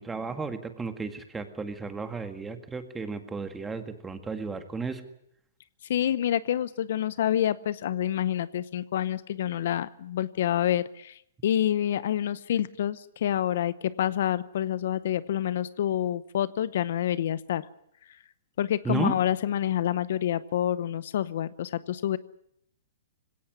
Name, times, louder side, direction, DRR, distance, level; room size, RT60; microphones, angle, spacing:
voice 1, 0.0-5.0 18.9-19.1, right 4 dB, 10° right, 8 dB, 1.9 m, -33 dB
voice 2, 5.9-17.6 18.6-22.2, left 11 dB, 65° left, 18 dB, 0.8 m, -27 dB
20.5 x 17.0 x 9.6 m, 0.76 s
hypercardioid pair, 145°, 0 cm